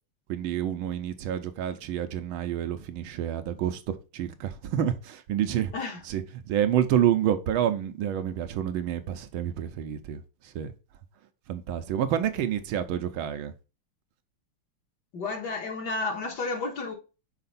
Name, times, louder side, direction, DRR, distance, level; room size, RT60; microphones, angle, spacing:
voice 1, 0.3-5.7 6.0-10.7 11.5-13.5, right 10 dB, 75° right, 1.5 m, -28 dB
voice 2, 15.1-16.9, left 3 dB, 55° left, 1.9 m, -31 dB
5.8 x 4.3 x 4.1 m
omnidirectional pair, 2.3 m